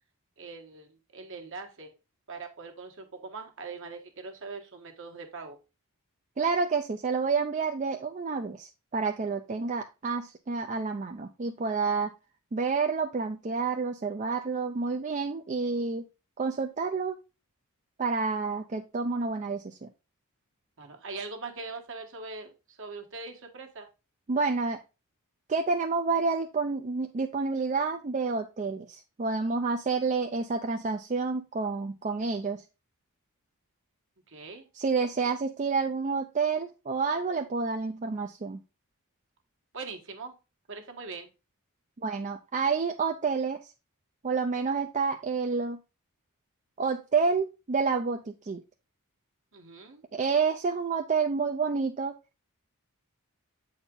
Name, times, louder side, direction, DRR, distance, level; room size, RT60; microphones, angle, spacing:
voice 1, 0.4-1.9 2.3-5.6 20.8-23.9 34.3-34.7 39.7-40.3 40.7-41.3 49.5-50.0, right 4 dB, 60° right, 4 dB, 1.3 m, -41 dB
voice 2, 6.4-12.1 12.5-16.0 16.4-17.2 18.0-19.9 24.3-24.8 25.5-32.6 34.7-38.6 42.0-43.7 44.2-45.8 46.8-48.6 50.1-52.1, right 4 dB, 35° right, 4 dB, 0.4 m, -29 dB
8.0 x 4.3 x 3.7 m, 0.29 s
head